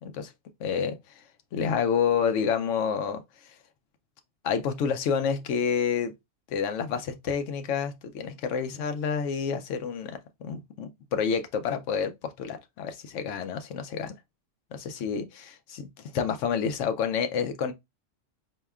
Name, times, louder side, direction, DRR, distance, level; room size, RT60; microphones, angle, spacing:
voice 1, 0.0-0.3 0.6-1.2 1.5-3.5 4.4-6.1 6.5-14.1 14.7-15.9 16.1-17.7, left 6 dB, 75° left, 0.9 m, -29 dB
4.3 x 2.8 x 2.3 m
omnidirectional pair, 1.3 m